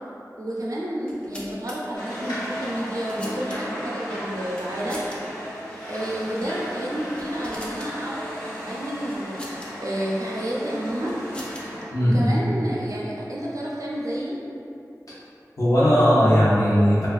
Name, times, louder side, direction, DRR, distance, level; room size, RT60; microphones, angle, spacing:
voice 1, 0.4-5.1 5.9-8.3 8.6-11.2 12.0-14.4, right 1 dB, 60° right, -5 dB, 0.5 m, -30 dB
sound 1, 1.0-1.8 2.6-3.9 4.5-5.2 5.5-5.6 6.3-6.6 6.9-7.9 9.1-9.7 10.7-11.8, equal, 15° left, 0.4 m, -42 dB
sound 2, 1.9-11.8, equal, 80° left, 0.9 m, -35 dB
voice 2, 11.9-12.4 15.6-17.1, equal, 55° left, -10 dB, 0.6 m, -18 dB
2.5 x 2.3 x 2.3 m, 2.6 s
wide cardioid pair, 45°, 7 cm